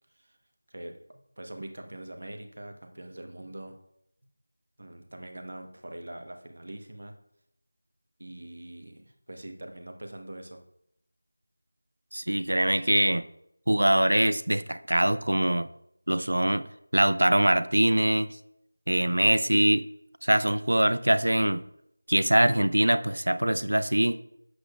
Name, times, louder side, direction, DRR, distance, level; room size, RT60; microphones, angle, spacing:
voice 1, 0.7-3.8 4.8-7.1 8.2-10.6, right 1 dB, 65° right, 5 dB, 1.1 m, -43 dB
voice 2, 12.1-13.2 13.7-15.7 16.1-16.6 16.9-18.3 18.9-19.8 20.2-21.6 22.1-24.2, right 1 dB, 90° right, 14 dB, 0.4 m, -23 dB
8.5 x 7.8 x 2.4 m, 0.75 s
figure-of-eight pair, 175°, 0 cm